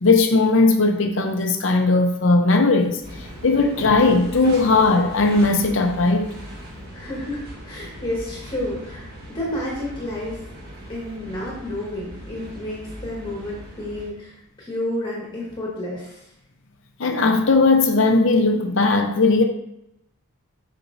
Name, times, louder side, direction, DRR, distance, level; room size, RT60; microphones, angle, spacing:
voice 1, 0.0-6.3 17.0-19.4, left 3 dB, 60° left, 4 dB, 0.7 m, -18 dB
sound 1, 3.0-14.1, equal, 45° right, 1.5 m, -39 dB
voice 2, 6.9-10.4 10.9-16.3, left 1 dB, 20° left, -5 dB, 1.7 m, -31 dB
7.8 x 6.0 x 2.6 m, 0.81 s
head